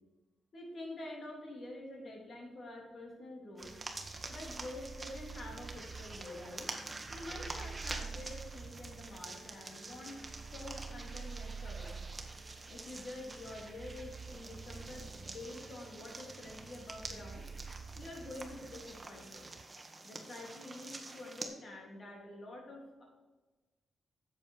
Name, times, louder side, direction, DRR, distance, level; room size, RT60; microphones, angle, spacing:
voice 1, 0.5-3.7 4.3-6.7 7.1-10.1 10.5-12.0 12.7-17.4 17.9-19.4 20.0-23.0, left 1 dB, 55° left, -1 dB, 3.4 m, -47 dB
sound 1, 3.6-21.5, right 2 dB, 25° right, 1.5 m, -47 dB
sound 2, 3.6-19.6, right 5 dB, 45° right, 0.4 m, -49 dB
10.5 x 7.6 x 4.8 m, 1.2 s
cardioid pair, 80°, 0 cm